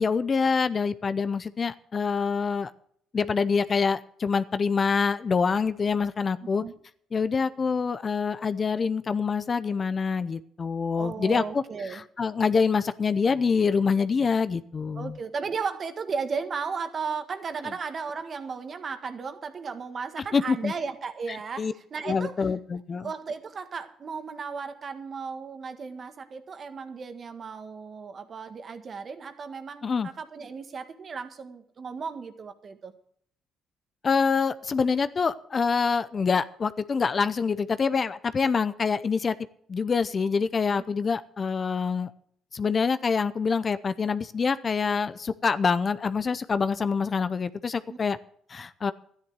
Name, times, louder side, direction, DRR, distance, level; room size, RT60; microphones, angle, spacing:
voice 1, 0.0-2.7 3.1-6.6 7.1-15.2 20.3-20.7 21.3-21.7 22.0-23.1 29.8-30.1 34.0-39.3 39.7-42.1 42.5-48.2 48.5-48.9, left 5 dB, 35° left, 13 dB, 0.7 m, -26 dB
voice 2, 11.0-12.0 14.9-22.3 22.9-32.9 47.9-48.0, right 5 dB, 40° right, 9 dB, 1.6 m, -35 dB
12.5 x 10.5 x 6.1 m, 0.64 s
cardioid pair, 95°, 0 cm